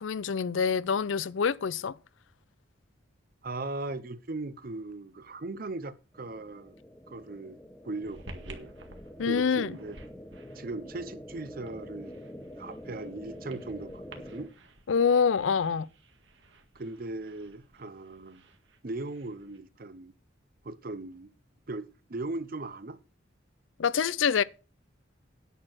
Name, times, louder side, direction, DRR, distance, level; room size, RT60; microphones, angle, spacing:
voice 1, 0.0-1.9 9.2-9.7 14.9-15.9 23.8-24.4, left 6 dB, 80° left, 0.5 m, -26 dB
voice 2, 3.4-6.7 7.1-7.6 7.8-8.7 9.3-10.0 10.5-12.1 12.6-14.5 16.7-18.4 18.8-20.1 20.6-21.3 21.7-23.0, right 2 dB, 50° right, 0.7 m, -38 dB
sound 1, 6.1-14.5, equal, 10° left, 1.4 m, -46 dB
sound 2, 8.0-19.6, right 2 dB, 70° right, 1.8 m, -53 dB
10.0 x 6.5 x 6.3 m
head